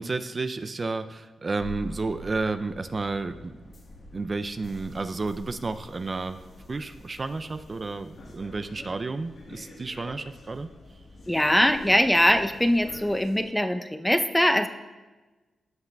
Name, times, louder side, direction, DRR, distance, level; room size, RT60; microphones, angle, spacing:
voice 1, 0.0-3.6 4.1-6.4 6.7-10.7, right 3 dB, 40° right, 9 dB, 0.4 m, -31 dB
sound 1, 1.6-13.4, left 1 dB, 65° left, 1.4 m, -46 dB
voice 2, 11.3-14.7, left 1 dB, 10° left, 8 dB, 0.6 m, -22 dB
16.5 x 5.6 x 2.3 m, 1.2 s
supercardioid pair, 50°, 0 cm